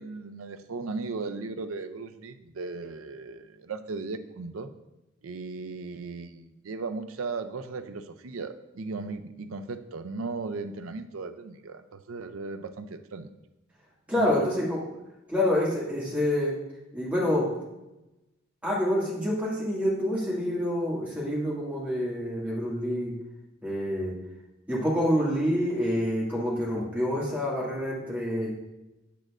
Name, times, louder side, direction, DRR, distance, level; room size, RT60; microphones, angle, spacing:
voice 1, 0.0-4.7 5.2-13.3 14.2-14.5, right 3 dB, 80° right, 9 dB, 0.5 m, -36 dB
voice 2, 14.1-14.8 15.3-16.5 16.9-17.5 18.6-23.1 23.6-24.2 24.7-28.5, left 1 dB, 5° right, -7 dB, 2.0 m, -27 dB
8.4 x 7.6 x 2.5 m, 0.97 s
head